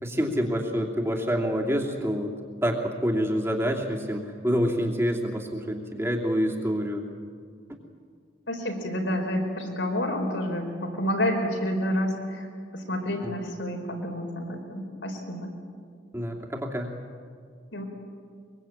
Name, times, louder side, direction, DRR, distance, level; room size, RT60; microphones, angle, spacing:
voice 1, 0.0-2.3 2.6-7.0 13.2-13.3 16.1-16.9, equal, 15° right, 0 dB, 2.8 m, -27 dB
voice 2, 8.5-12.5 12.7-15.5 17.7-17.8, equal, 75° left, 3 dB, 4.6 m, -29 dB
23.5 x 23.5 x 8.9 m, 2.1 s
head